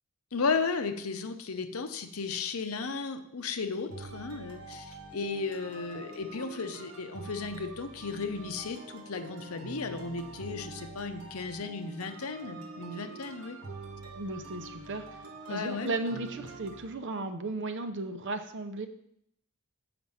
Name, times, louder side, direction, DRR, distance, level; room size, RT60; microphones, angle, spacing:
voice 1, 0.3-13.6 15.5-15.9, left 4 dB, 70° left, 8 dB, 0.7 m, -35 dB
sound 1, 3.9-16.9, right 3 dB, 75° right, 1.5 m, -45 dB
voice 2, 14.2-15.0 15.5-18.9, right 2 dB, 55° right, 8 dB, 0.8 m, -35 dB
7.8 x 5.9 x 5.6 m, 0.74 s
head